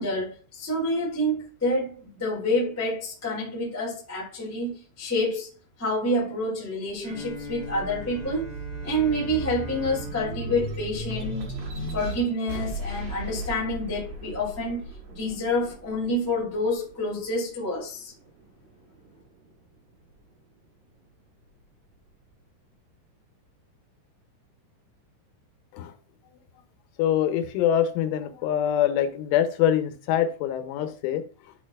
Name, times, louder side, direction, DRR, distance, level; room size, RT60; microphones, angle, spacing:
voice 1, 0.0-5.5 5.8-8.5 8.8-11.5 11.9-18.1, left 1 dB, 15° left, 0.6 m, -28 dB
sound 1, 6.9-17.7 18.2-19.4, right 2 dB, 75° right, 1.5 m, -36 dB
Bowed string instrument, 7.0-11.9, right 1 dB, 50° right, 2.9 m, -42 dB
voice 2, 27.0-31.5, left 10 dB, 85° left, 3.4 m, -24 dB
12.0 x 4.4 x 2.4 m
omnidirectional pair, 5.4 m